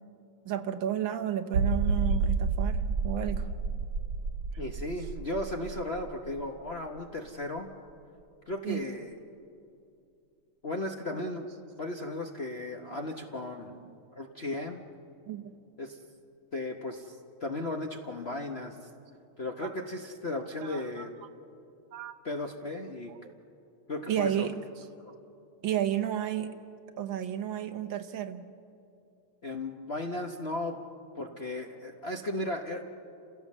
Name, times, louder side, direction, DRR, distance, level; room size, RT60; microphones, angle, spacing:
voice 1, 0.4-3.6 8.6-8.8 11.1-11.2 12.2-12.3 12.8-13.0 13.7-14.0 15.3-15.5 20.6-21.1 21.9-22.1 22.7-23.3 24.1-24.5 25.6-26.5 27.0-28.5, right 10 dB, 65° right, 7 dB, 1.5 m, -33 dB
sound 1, 1.5-7.0 7.3-7.4 7.9-8.0, right 4 dB, 85° right, 3.0 m, -30 dB
voice 2, 4.6-7.7 8.5-9.2 10.6-11.5 11.8-13.8 14.1-14.8 15.8-16.0 16.5-18.9 19.4-21.1 22.2-23.1 23.9-24.5 29.4-30.8 31.2-32.9, left 2 dB, 45° left, 2 dB, 0.9 m, -35 dB
29.5 x 16.0 x 7.3 m, 2.6 s
omnidirectional pair, 2.4 m